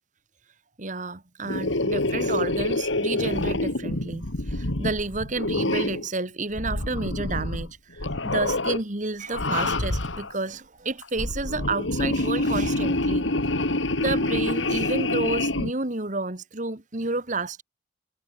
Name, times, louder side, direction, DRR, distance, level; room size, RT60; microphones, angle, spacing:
voice 1, 0.8-13.3 14.0-17.6, right 3 dB, 40° right, 2.0 m, -30 dB
sound 1, 1.5-6.1 6.5-7.7 8.0-8.8 9.3-10.3 11.0-15.7, left 2 dB, 90° left, 3.0 m, -26 dB
head